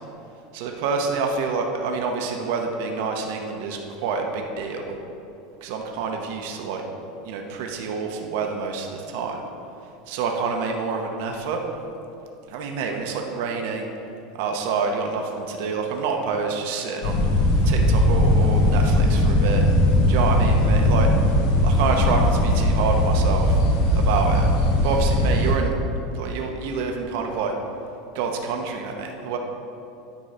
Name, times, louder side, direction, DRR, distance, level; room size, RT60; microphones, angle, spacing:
voice 1, 0.5-5.0 5.6-6.8 7.3-9.4 10.1-11.6 12.5-13.9 14.4-17.2 17.6-19.6 20.1-21.1 21.6-23.6 23.9-24.5 24.8-25.7 26.1-27.5 28.1-29.4, right 5 dB, 60° right, 2 dB, 0.9 m, -27 dB
sound 1, 17.0-25.5, left 1 dB, 75° left, 1.9 m, -19 dB
9.7 x 3.8 x 5.6 m, 2.8 s
supercardioid pair, 160°, 0 cm